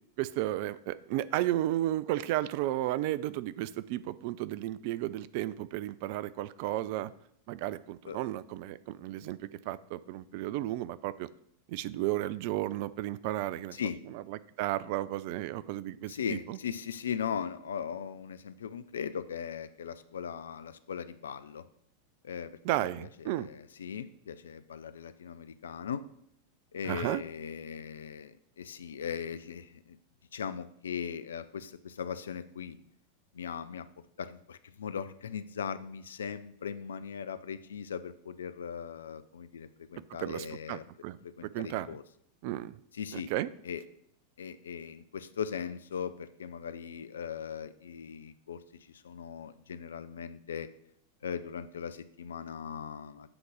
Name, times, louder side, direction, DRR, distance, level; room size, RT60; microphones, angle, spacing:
voice 1, 0.2-7.1 7.5-11.3 11.7-13.8 14.1-16.6 22.6-23.5 26.9-27.2 40.2-42.0 42.4-42.8 43.1-43.5, right 14 dB, 45° right, 16 dB, 0.3 m, -33 dB
voice 2, 16.1-21.6 22.2-22.6 23.0-26.0 26.7-30.0 30.3-32.8 33.3-33.9 34.2-40.8 41.2-42.0 42.9-43.3 43.6-43.8 44.4-48.6 48.9-50.7 51.2-53.3, left 7 dB, 65° left, 13 dB, 0.4 m, -39 dB
7.8 x 3.9 x 6.2 m, 0.70 s
figure-of-eight pair, 90°, 0 cm